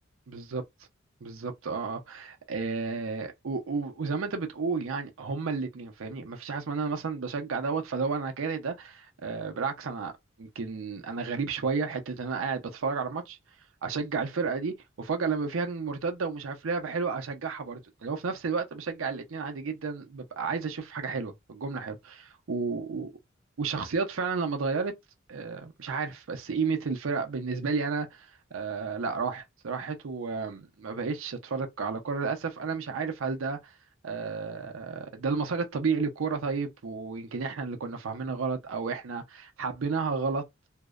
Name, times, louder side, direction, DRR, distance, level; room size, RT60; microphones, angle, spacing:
voice 1, 0.3-0.6 1.2-10.1 10.4-13.4 13.8-23.1 23.6-24.9 25.3-33.7 34.0-40.4, right 4 dB, 80° right, 0.5 m, -32 dB
2.6 x 2.0 x 2.3 m
head